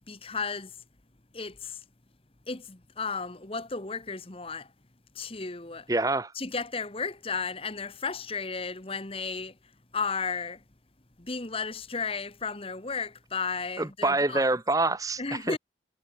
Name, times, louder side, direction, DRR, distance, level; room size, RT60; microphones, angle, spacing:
voice 1, 0.1-0.7 1.3-1.8 2.5-4.7 5.1-5.9 6.3-9.5 9.9-10.6 11.2-14.5 15.2-15.6, left 4 dB, 30° left, 1.4 m, -34 dB
voice 2, 5.9-6.3 13.8-15.6, right 2 dB, 20° right, 0.9 m, -26 dB
head